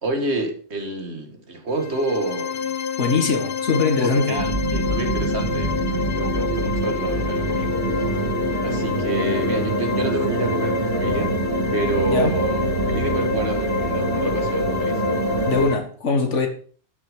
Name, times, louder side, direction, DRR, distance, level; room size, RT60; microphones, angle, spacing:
voice 1, 0.0-2.8 4.0-7.7 8.6-11.4 11.7-15.0, right 2 dB, 65° right, 2.1 m, -28 dB
sound 1, 1.7-15.7, left 7 dB, 55° left, 1.1 m, -28 dB
voice 2, 3.0-4.4 12.1-12.4 15.5-16.5, left 4 dB, 85° left, 1.9 m, -21 dB
sound 2, 4.4-15.7, right 3 dB, 85° right, 2.7 m, -25 dB
12.0 x 6.4 x 5.1 m
omnidirectional pair, 1.2 m